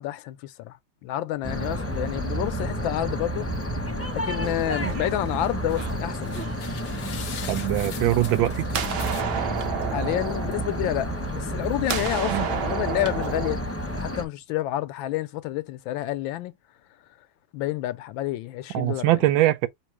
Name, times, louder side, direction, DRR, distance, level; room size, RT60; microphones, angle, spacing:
voice 1, 0.0-3.5 4.1-6.4 9.9-13.6 14.0-16.5 17.5-19.1, left 14 dB, 80° left, 1.3 m, -29 dB
sound 1, 1.4-14.2, equal, 10° left, 0.6 m, -30 dB
sound 2, 4.4-5.3 5.8-7.3 7.9-8.4 8.7-11.6 11.9-13.6, right 7 dB, 65° right, 1.3 m, -32 dB
sound 3, 5.4-5.9 6.3-9.7 10.1-10.2 10.5-10.6, left 8 dB, 60° left, 0.9 m, -41 dB
voice 2, 7.5-8.7 12.3-12.5 18.7-19.7, right 15 dB, 85° right, 1.4 m, -22 dB
5.4 x 2.0 x 4.6 m
omnidirectional pair, 2.1 m